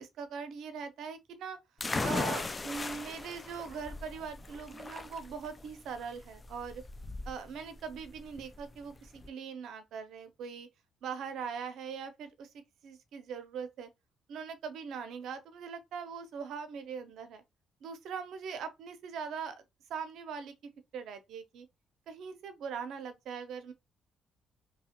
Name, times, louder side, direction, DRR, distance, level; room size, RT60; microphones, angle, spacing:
voice 1, 0.0-1.6 2.0-6.8 7.3-10.7 11.0-13.9 14.3-17.4 17.8-19.6 19.9-21.7 22.1-23.7, right 6 dB, 75° right, 0.6 m, -41 dB
sound 1, 1.8-9.3, left 3 dB, 25° left, 0.4 m, -38 dB
2.8 x 2.3 x 2.8 m
cardioid pair, 90°, 0 cm